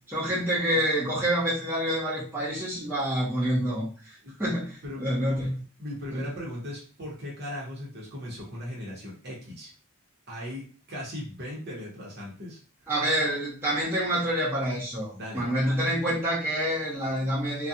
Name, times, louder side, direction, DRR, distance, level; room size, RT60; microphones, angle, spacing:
voice 1, 0.1-5.6 6.1-6.3 12.9-17.7, equal, 10° right, -9 dB, 0.9 m, -27 dB
voice 2, 4.8-5.3 5.8-9.7 10.3-12.6 15.1-15.5, left 1 dB, 50° right, -4 dB, 1.0 m, -38 dB
2.4 x 2.3 x 2.7 m, 0.37 s
head